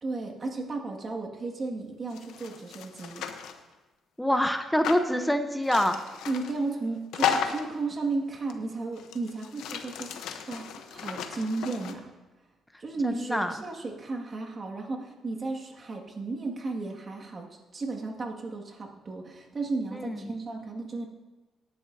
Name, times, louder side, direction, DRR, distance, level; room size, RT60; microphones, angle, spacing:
voice 1, 0.0-3.2 6.3-12.0 12.8-17.5 17.7-21.1, right 3 dB, 40° right, 0 dB, 1.9 m, -34 dB
sound 1, 2.1-3.6 4.8-5.1 5.6-6.6 7.1-7.8 8.5-8.6 9.0-11.9, left 8 dB, 85° left, 0.8 m, -34 dB
voice 2, 4.2-6.0 13.0-13.5 19.9-20.4, equal, 5° left, 7 dB, 0.7 m, -26 dB
18.0 x 10.5 x 2.7 m, 1.2 s
cardioid pair, 90°, 0 cm